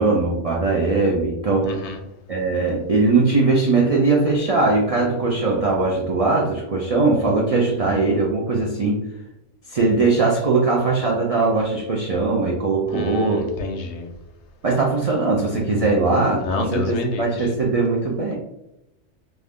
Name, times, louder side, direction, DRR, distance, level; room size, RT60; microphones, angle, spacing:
voice 1, 0.0-1.7 2.3-9.0 9.7-13.5 14.6-18.3, right 3 dB, 60° right, -3 dB, 0.3 m, -20 dB
voice 2, 1.7-2.0 12.9-14.1 16.4-17.3, left 4 dB, 70° left, 4 dB, 0.8 m, -28 dB
2.6 x 2.4 x 3.4 m, 0.87 s
omnidirectional pair, 1.3 m